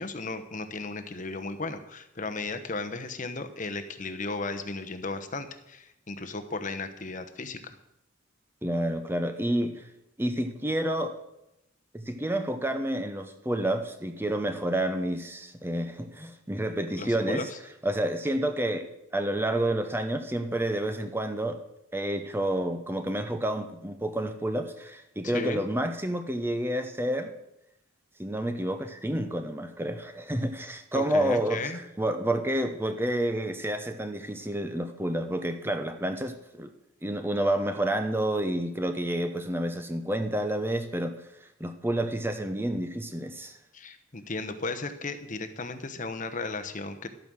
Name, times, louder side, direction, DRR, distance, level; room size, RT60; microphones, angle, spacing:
voice 1, 0.0-7.8 17.0-17.6 25.2-25.6 30.9-31.8 43.7-47.1, left 3 dB, 35° left, 8 dB, 1.0 m, -35 dB
voice 2, 8.6-9.8 10.2-11.1 11.9-17.5 17.8-18.9 19.1-21.6 21.9-27.3 28.2-31.6 32.0-36.7 37.0-41.2 41.6-43.6, right 1 dB, 10° right, 7 dB, 0.8 m, -29 dB
12.5 x 9.0 x 6.3 m, 0.86 s
head